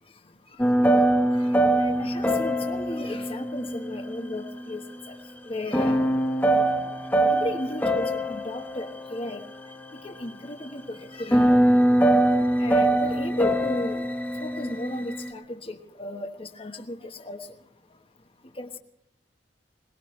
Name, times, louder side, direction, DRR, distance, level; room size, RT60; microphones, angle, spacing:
voice 1, 0.0-6.6 7.0-11.8 12.4-14.1 14.4-18.8, left 1 dB, 35° left, 5 dB, 1.2 m, -36 dB
sound 1, 0.6-4.7 5.7-10.1 11.0-15.3, right 1 dB, 10° left, 1.1 m, -23 dB
22.5 x 20.0 x 3.2 m, 0.77 s
head